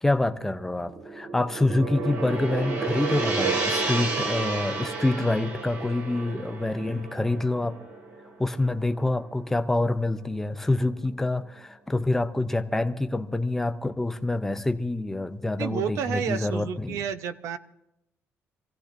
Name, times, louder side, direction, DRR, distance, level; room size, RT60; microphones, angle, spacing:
voice 1, 0.0-7.8 8.4-17.0, left 2 dB, 5° left, 8 dB, 0.6 m, -26 dB
Gong, 0.9-9.2, right 3 dB, 55° right, 2.4 m, -31 dB
voice 2, 15.6-17.6, right 8 dB, 75° right, 12 dB, 0.7 m, -30 dB
26.0 x 16.0 x 2.6 m, 0.86 s
cardioid pair, 170°, 5 cm